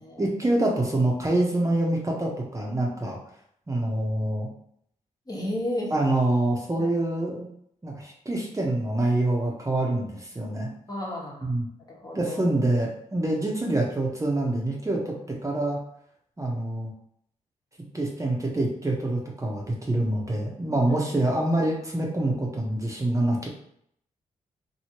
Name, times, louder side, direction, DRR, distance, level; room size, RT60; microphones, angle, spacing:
voice 1, 0.2-3.2 3.7-4.5 5.9-7.5 7.8-10.7 11.4-11.6 12.1-15.8 16.4-16.9 17.9-23.5, right 1 dB, 20° right, -2 dB, 0.8 m, -26 dB
voice 2, 5.3-5.9 6.8-6.9 10.9-11.5 11.9-12.4 20.9-21.0, left 1 dB, 30° left, -3 dB, 1.2 m, -33 dB
2.9 x 2.7 x 2.9 m, 0.69 s
cardioid pair, 60°, 14 cm